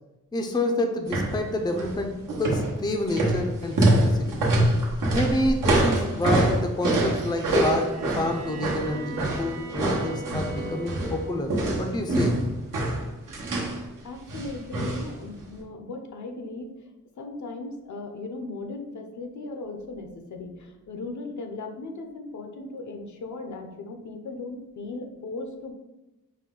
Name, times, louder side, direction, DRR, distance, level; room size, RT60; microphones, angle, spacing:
voice 1, 0.3-4.4 5.1-11.5 11.8-12.4, left 1 dB, 15° left, 4 dB, 0.4 m, -28 dB
sound 1, 1.0-1.4 1.7-2.0 2.3-11.2 11.5-13.8 14.3-15.1 15.4-15.5, right 1 dB, 80° right, 1.0 m, -24 dB
Bowed string instrument, 7.8-11.5, right 5 dB, 55° right, 0.5 m, -40 dB
voice 2, 14.0-16.9 17.2-25.7, left 3 dB, 65° left, 4 dB, 0.6 m, -37 dB
4.3 x 2.2 x 3.7 m, 0.99 s
cardioid pair, 90°, 32 cm